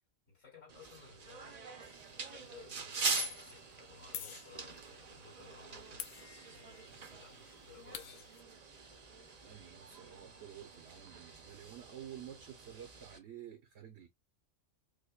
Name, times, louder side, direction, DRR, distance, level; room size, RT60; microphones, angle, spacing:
voice 1, 0.3-1.6 2.1-6.0 6.5-8.4 9.2-9.4, left 6 dB, 70° left, 2.5 m, -58 dB
sound 1, 0.7-13.2, right 5 dB, 40° right, 0.6 m, -44 dB
sound 2, 1.8-2.0 3.1-3.6 4.1-5.0 6.0-6.9 7.2-7.3 7.5-8.4, left 7 dB, 90° left, 1.0 m, -45 dB
voice 2, 9.4-14.1, right 10 dB, 65° right, 0.9 m, -51 dB
5.0 x 2.1 x 2.3 m
omnidirectional pair, 1.3 m